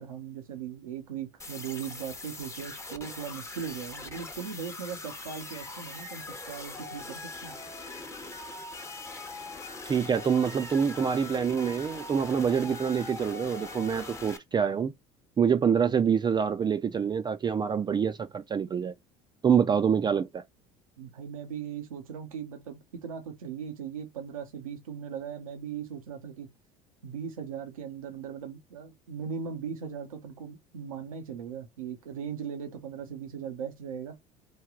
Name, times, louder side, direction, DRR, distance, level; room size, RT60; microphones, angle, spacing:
voice 1, 0.0-7.6 21.0-26.5 27.0-34.1, right 7 dB, 85° right, 0.7 m, -39 dB
sound 1, 1.4-14.4, left 3 dB, 15° left, 0.8 m, -41 dB
voice 2, 9.9-14.9 15.4-18.9 19.4-20.4, right 7 dB, 25° right, 0.4 m, -26 dB
3.3 x 2.3 x 3.6 m
hypercardioid pair, 70°, 17 cm